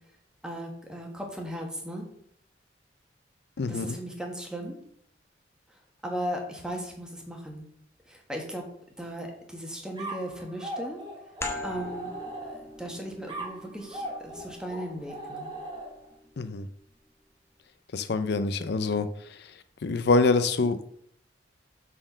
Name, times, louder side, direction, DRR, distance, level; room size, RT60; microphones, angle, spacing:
voice 1, 0.4-2.1 3.7-4.8 6.0-7.7 8.1-8.6 9.0-11.0 11.6-12.1 12.4-15.5, equal, 5° right, 1 dB, 1.5 m, -37 dB
voice 2, 3.6-4.0 16.4-16.7 17.9-19.1 19.8-20.8, left 3 dB, 65° left, 12 dB, 0.5 m, -25 dB
sound 1, 10.0-12.8 13.3-16.1, right 1 dB, 25° right, 2.2 m, -39 dB
sound 2, 11.4-16.7, left 2 dB, 15° left, 0.9 m, -42 dB
7.6 x 4.3 x 6.1 m, 0.68 s
head